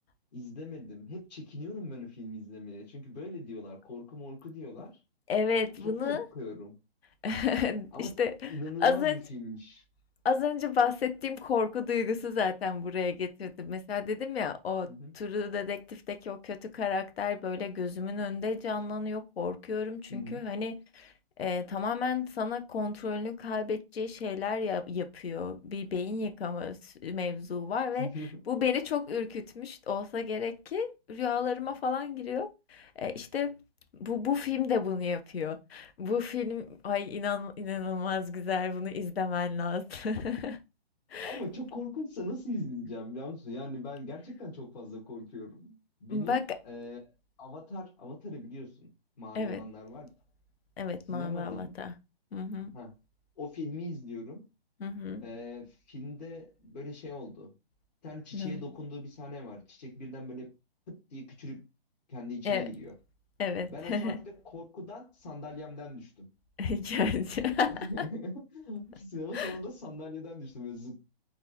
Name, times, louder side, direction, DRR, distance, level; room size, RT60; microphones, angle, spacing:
voice 1, 0.3-5.0 5.8-6.8 7.9-8.1 8.5-9.8 14.9-15.1 20.1-20.4 28.0-28.4 41.2-47.1 47.4-48.9 49.2-50.1 51.1-51.7 52.7-52.9 53.4-54.5 55.2-57.5 58.0-60.5 60.9-61.7 62.1-62.9 63.7-64.2 64.5-66.3 67.4-71.0, left 2 dB, 45° left, 1.7 m, -41 dB
voice 2, 5.3-6.3 7.2-8.5 8.8-9.2 10.2-14.9 15.1-21.1 21.4-28.1 28.5-33.6 34.0-40.6 41.1-41.4 46.1-46.6 49.3-49.6 50.8-51.9 52.3-52.7 54.8-55.3 58.3-58.6 62.4-62.7 63.4-64.2 66.6-68.1 69.3-69.6, left 6 dB, 75° left, 0.8 m, -32 dB
3.8 x 2.5 x 2.9 m
hypercardioid pair, 165°, 31 cm